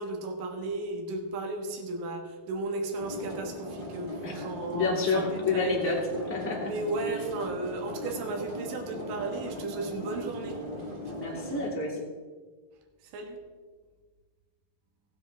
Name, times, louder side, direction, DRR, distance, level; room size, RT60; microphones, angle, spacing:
voice 1, 0.0-5.8 6.6-10.7 13.0-13.4, right 2 dB, 70° right, 2 dB, 3.0 m, -35 dB
sound 1, 3.0-11.7, equal, 35° right, 0.8 m, -39 dB
voice 2, 4.7-6.7 11.1-12.1, left 3 dB, 5° left, -4 dB, 1.5 m, -29 dB
18.5 x 7.8 x 3.4 m, 1.4 s
omnidirectional pair, 4.4 m